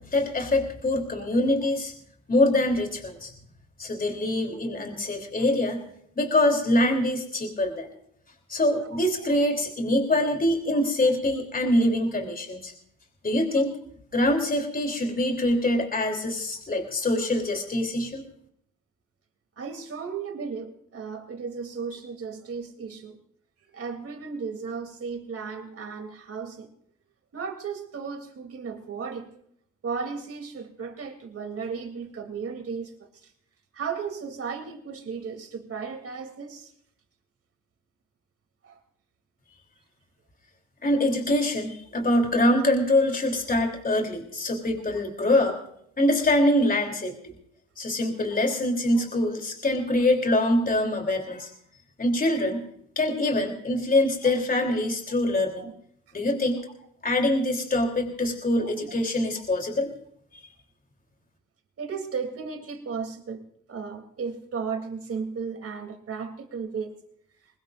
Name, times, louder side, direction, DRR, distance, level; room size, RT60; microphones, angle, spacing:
voice 1, 0.0-1.9 2.3-3.3 3.8-5.8 6.2-7.9 8.5-12.7 13.2-13.7 14.1-18.3 40.8-45.6 46.0-47.1 47.8-51.5 52.0-52.6 53.0-55.7 56.1-56.6 57.0-59.9, left 1 dB, 30° left, 3 dB, 3.6 m, -24 dB
voice 2, 8.8-9.3 19.6-23.2 23.7-26.7 27.3-29.3 29.8-33.3 33.7-36.7 38.6-38.8 46.8-46.9 48.3-48.4 55.6-55.7 58.6-58.9 61.8-67.0, right 5 dB, 50° right, 5 dB, 3.3 m, -35 dB
22.5 x 20.0 x 2.7 m, 0.69 s
cardioid pair, 90°, 30 cm